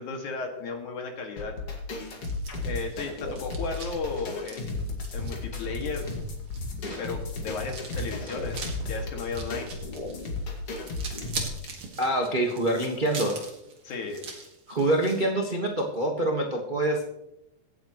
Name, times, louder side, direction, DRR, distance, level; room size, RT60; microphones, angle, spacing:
voice 1, 0.0-1.6 2.6-6.1 7.0-9.7 13.8-14.2, left 4 dB, 65° left, 2 dB, 3.5 m, -35 dB
sound 1, 1.4-11.7, left 2 dB, 45° left, 2.8 m, -35 dB
sound 2, 2.1-15.2, right 4 dB, 45° right, 2.6 m, -43 dB
sound 3, 4.2-4.4 4.7-4.8 5.2-6.3 6.6-9.0 9.3-9.6, left 1 dB, 25° left, 5.3 m, -39 dB
voice 2, 12.0-13.5 14.7-17.0, right 1 dB, 85° right, 0 dB, 0.4 m, -26 dB
24.5 x 8.6 x 3.1 m, 0.86 s
omnidirectional pair, 3.7 m